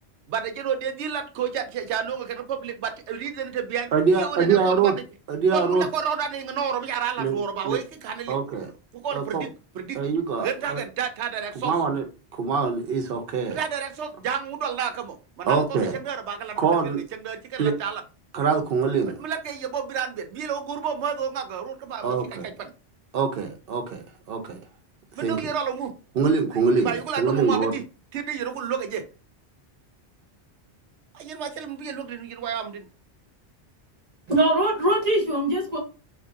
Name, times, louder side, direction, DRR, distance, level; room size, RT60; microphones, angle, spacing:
voice 1, 0.3-3.9 4.2-4.9 5.5-8.4 8.9-9.5 9.7-10.0 10.4-11.7 13.5-16.8 17.1-18.0 19.2-22.7 25.2-25.9 26.8-27.8 28.1-29.0 31.1-32.9, right 7 dB, 85° right, 7 dB, 0.9 m, -30 dB
voice 2, 3.9-4.9 5.3-5.9 7.2-7.8 8.3-8.7 9.1-9.4 9.9-10.8 11.5-12.0 12.3-13.6 15.5-16.0 16.6-17.0 17.6-17.7 18.3-19.2 22.0-22.5 23.1-24.6 25.2-25.5 26.2-27.7, right 5 dB, 60° right, 4 dB, 0.9 m, -24 dB
voice 3, 34.3-35.8, right 1 dB, 40° right, 0 dB, 1.1 m, -22 dB
3.6 x 2.8 x 2.6 m, 0.33 s
omnidirectional pair, 1.1 m